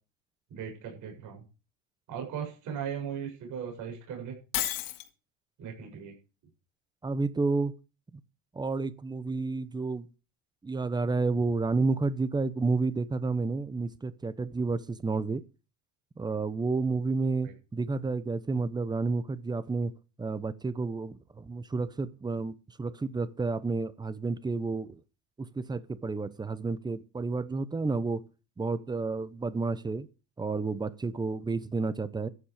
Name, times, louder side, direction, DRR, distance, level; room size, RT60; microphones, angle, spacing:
voice 1, 0.5-1.4 2.1-4.4 5.6-6.1, right 8 dB, 50° right, 2 dB, 7.7 m, -37 dB
Shatter, 4.5-5.1, left 15 dB, 65° left, 2.2 m, -31 dB
voice 2, 7.0-7.7 8.5-10.1 10.6-15.4 16.2-19.9 20.2-25.0 25.4-28.2 28.6-30.1 30.4-32.3, right 3 dB, 10° right, 16 dB, 0.8 m, -30 dB
14.5 x 10.5 x 5.0 m, 0.34 s
cardioid pair, 145°, 37 cm